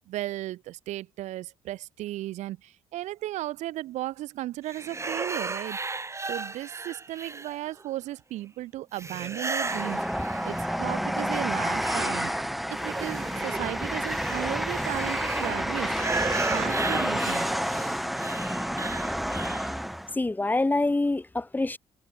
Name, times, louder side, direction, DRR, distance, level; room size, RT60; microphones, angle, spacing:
voice 1, 0.1-5.8 6.3-12.3 12.8-16.0 16.5-17.5, right 15 dB, 90° right, 6.9 m, -35 dB
sound 1, 4.7-7.9 8.9-11.0 11.3-19.8, right 3 dB, 25° right, 3.5 m, -35 dB
Train, 9.6-20.1, equal, ahead, 4.5 m, -29 dB
voice 2, 20.1-21.8, left 2 dB, 15° left, 4.2 m, -25 dB
cardioid pair, 95°, 12 cm